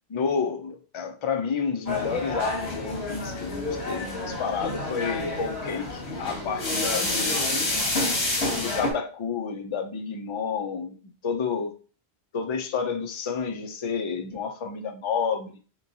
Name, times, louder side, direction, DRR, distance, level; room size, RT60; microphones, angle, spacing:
voice 1, 0.1-7.5 8.5-11.0 11.2-11.7 12.3-15.6, left 6 dB, 50° left, 5 dB, 0.3 m, -30 dB
sound 1, 1.9-8.9, left 2 dB, 75° left, 1.4 m, -28 dB
3.6 x 3.0 x 2.6 m, 0.36 s
omnidirectional pair, 1.1 m